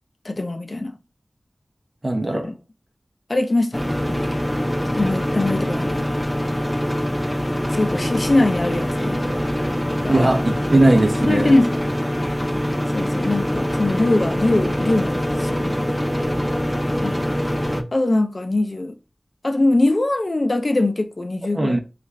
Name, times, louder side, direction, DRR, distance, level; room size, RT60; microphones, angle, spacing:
voice 1, 0.2-1.0 2.4-2.5 3.3-4.2 4.9-6.1 7.7-9.2 9.9-10.5 11.2-11.9 12.9-15.9 17.0-17.3 17.9-18.9 19.4-21.8, left 2 dB, 55° left, 0.5 m, -22 dB
voice 2, 2.0-2.5 10.1-11.5 21.5-21.8, right 1 dB, 50° right, 0.6 m, -18 dB
sound 1, 3.7-17.8, equal, 5° left, 0.6 m, -24 dB
3.1 x 2.4 x 3.3 m
wide cardioid pair, 45°, 0 cm